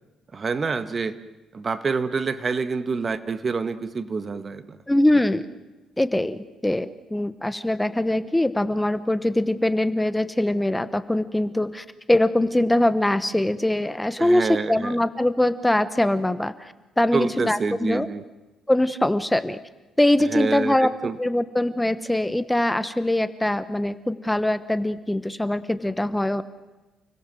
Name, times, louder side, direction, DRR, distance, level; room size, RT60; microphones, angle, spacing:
voice 1, 0.3-1.2 1.5-4.8 14.2-15.0 17.1-18.2 20.3-21.2, right 4 dB, 40° right, 11 dB, 1.6 m, -27 dB
voice 2, 4.9-5.5 6.0-18.1 18.7-19.6 20.0-26.4, left 1 dB, 10° left, 13 dB, 1.1 m, -22 dB
30.0 x 20.5 x 7.8 m, 1.1 s
cardioid pair, 90°, 0 cm